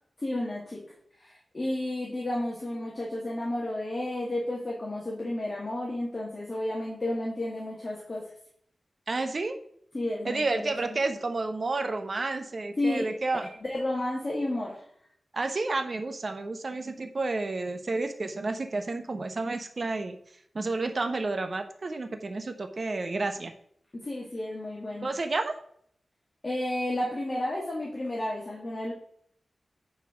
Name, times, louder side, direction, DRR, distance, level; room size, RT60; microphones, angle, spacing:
voice 1, 0.2-0.8 1.2-8.2 9.9-11.0 12.8-13.1 13.6-14.8 24.0-25.1 26.4-28.9, left 1 dB, 35° left, -3 dB, 2.1 m, -32 dB
voice 2, 9.1-9.6 10.2-13.5 15.3-20.2 20.5-23.5 25.0-25.5, right 3 dB, 50° right, 7 dB, 1.1 m, -30 dB
9.6 x 4.6 x 5.1 m, 0.65 s
wide cardioid pair, 90°, 0 cm